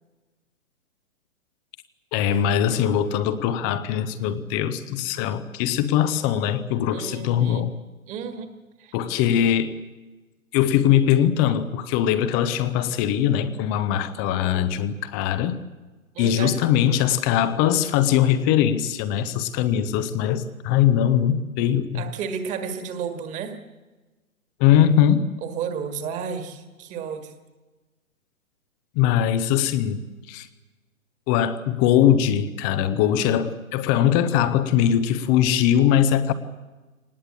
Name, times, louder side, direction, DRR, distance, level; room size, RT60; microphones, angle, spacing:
voice 1, 2.1-7.8 8.9-9.7 10.5-15.5 16.2-22.0 24.6-25.3 29.0-30.5 31.3-36.3, left 10 dB, 15° left, 13 dB, 0.7 m, -21 dB
voice 2, 6.9-7.7 8.1-8.5 8.8-9.0 16.1-16.5 21.9-23.6 25.4-27.3, right 6 dB, 20° right, 7 dB, 1.9 m, -32 dB
24.0 x 19.0 x 8.6 m, 1.2 s
figure-of-eight pair, 130°, 42 cm